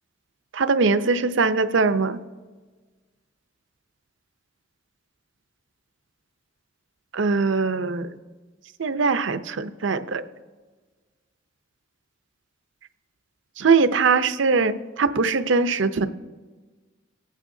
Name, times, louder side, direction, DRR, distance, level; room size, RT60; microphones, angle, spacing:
voice 1, 0.5-2.2 7.1-8.1 8.8-10.2 13.6-16.1, right 4 dB, 65° right, 11 dB, 0.6 m, -21 dB
20.0 x 9.0 x 2.7 m, 1.4 s
head